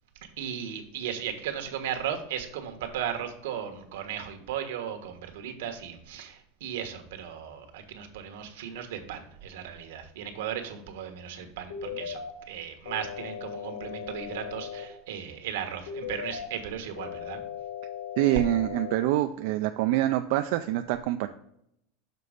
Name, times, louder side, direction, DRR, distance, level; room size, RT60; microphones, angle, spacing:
voice 1, 0.4-12.2 12.5-17.4, right 9 dB, 75° right, 5 dB, 1.3 m, -36 dB
sound 1, 11.7-12.3 12.8-14.8 15.9-16.5 17.0-19.0, left 8 dB, 85° left, 1.7 m, -37 dB
voice 2, 18.2-21.3, right 14 dB, 55° right, 8 dB, 0.3 m, -25 dB
6.7 x 4.0 x 5.0 m, 0.76 s
supercardioid pair, 175°, 0 cm